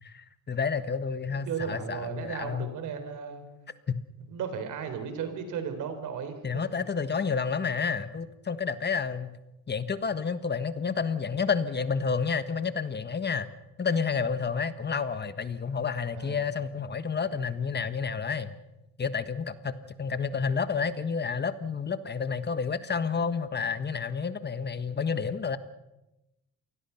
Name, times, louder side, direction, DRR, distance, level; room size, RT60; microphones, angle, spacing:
voice 1, 0.0-2.7 3.9-4.0 6.4-9.3 9.7-13.5 13.8-18.5 19.0-25.6, left 5 dB, 35° left, 12 dB, 1.4 m, -30 dB
voice 2, 1.5-3.4 4.3-6.6 16.1-16.5, right 7 dB, 85° right, 8 dB, 3.9 m, -35 dB
27.5 x 20.0 x 5.8 m, 0.96 s
cardioid pair, 90°, 30 cm